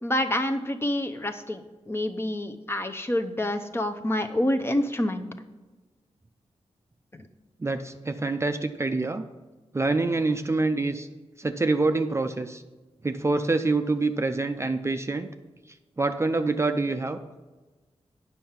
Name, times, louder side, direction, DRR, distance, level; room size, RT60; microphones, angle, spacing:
voice 1, 0.0-5.3, left 1 dB, 20° left, 6 dB, 0.7 m, -27 dB
voice 2, 7.6-9.3 9.7-11.1 11.4-12.6 13.0-15.3 16.0-17.2, right 3 dB, 25° right, 7 dB, 0.5 m, -26 dB
9.1 x 5.6 x 5.8 m, 1.2 s
wide cardioid pair, 85°, 11 cm